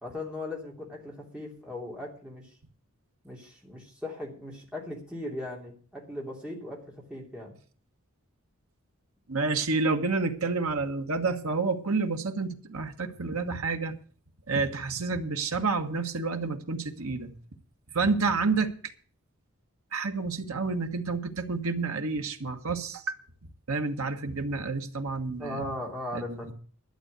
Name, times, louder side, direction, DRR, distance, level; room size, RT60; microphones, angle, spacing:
voice 1, 0.0-2.5 3.2-6.8 7.1-7.6 25.4-26.5, left 1 dB, 5° right, 2.9 m, -38 dB
voice 2, 9.3-13.9 14.5-17.3 17.9-18.7 19.9-23.2 23.7-25.6 26.1-26.5, right 4 dB, 75° right, 1.5 m, -29 dB
12.0 x 8.0 x 8.2 m
head